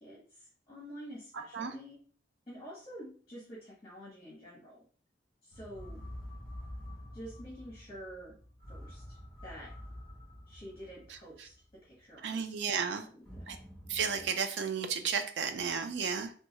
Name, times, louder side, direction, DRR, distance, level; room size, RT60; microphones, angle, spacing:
voice 1, 0.0-2.0 2.5-4.8 5.4-6.1 7.1-8.3 8.7-9.7 10.5-11.5 11.8-13.6, equal, 30° left, -5 dB, 0.8 m, -48 dB
voice 2, 1.3-1.7 11.4-11.5 12.2-13.1 13.5-13.6 13.9-16.3, right 6 dB, 80° right, 7 dB, 0.4 m, -33 dB
sound 1, 5.5-12.0 13.2-14.3, equal, 5° left, 1.0 m, -48 dB
3.0 x 2.3 x 2.8 m, 0.43 s
head